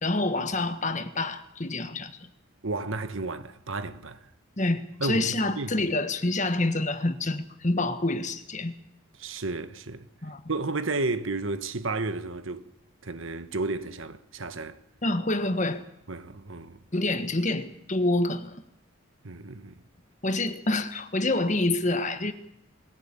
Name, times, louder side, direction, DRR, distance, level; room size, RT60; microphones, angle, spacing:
voice 1, 0.0-2.3 4.6-8.7 10.2-10.4 15.0-15.8 16.9-18.6 20.2-22.3, left 2 dB, 35° left, 1.5 m, -27 dB
voice 2, 2.6-4.2 5.0-5.9 9.2-10.1 10.5-12.7 13.0-14.8 16.1-16.8 19.2-19.7, right 3 dB, 65° right, 1.4 m, -32 dB
21.5 x 16.5 x 8.5 m
head